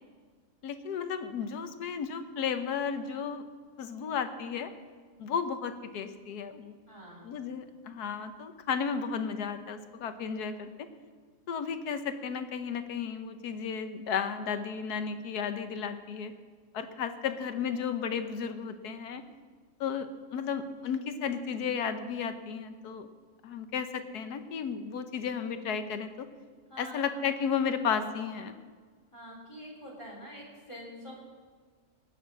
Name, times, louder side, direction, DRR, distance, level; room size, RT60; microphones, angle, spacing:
voice 1, 0.6-3.4 3.8-4.7 5.2-6.7 7.2-10.7 11.5-16.3 16.7-19.2 19.8-23.1 23.4-26.3 26.8-28.6, left 6 dB, 90° left, 9 dB, 1.5 m, -33 dB
voice 2, 6.9-7.4 26.7-27.0 29.1-31.2, equal, 20° left, -3 dB, 3.5 m, -46 dB
19.0 x 6.4 x 7.3 m, 1.5 s
omnidirectional pair, 1.6 m